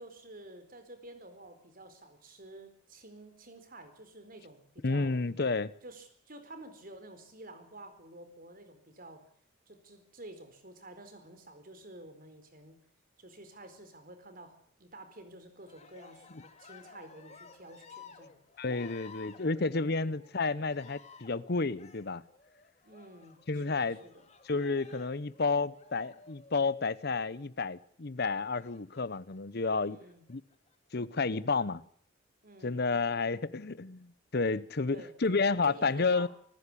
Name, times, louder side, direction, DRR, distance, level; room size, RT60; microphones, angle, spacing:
voice 1, 0.0-5.2 5.8-9.2 9.7-12.8 13.2-18.4 20.0-20.2 22.8-24.2 29.9-30.2 32.4-32.8 34.9-36.3, right 1 dB, 45° right, 4.3 m, -51 dB
voice 2, 4.8-5.7 18.6-22.2 23.5-24.0 24.4-30.0 30.3-30.4 30.9-31.8 32.6-36.3, left 4 dB, 55° left, 0.8 m, -31 dB
Cheering, 15.6-27.3 28.5-29.4 30.1-30.7, left 5 dB, 35° left, 2.3 m, -55 dB
26.5 x 14.5 x 8.5 m
head